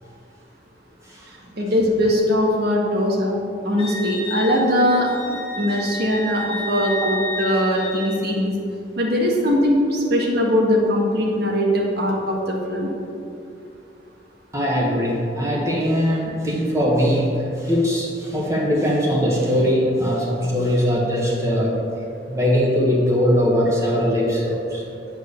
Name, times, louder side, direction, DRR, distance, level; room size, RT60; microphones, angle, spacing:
voice 1, 1.6-3.4 3.6-8.5 9.0-12.9, equal, 60° right, -1 dB, 1.6 m, -20 dB
Wind instrument woodwind instrument, 3.8-8.3, left 1 dB, 30° left, 1.4 m, -31 dB
voice 2, 14.5-21.8 22.3-24.8, equal, 15° right, -4 dB, 1.4 m, -21 dB
9.2 x 4.7 x 6.6 m, 2.5 s
head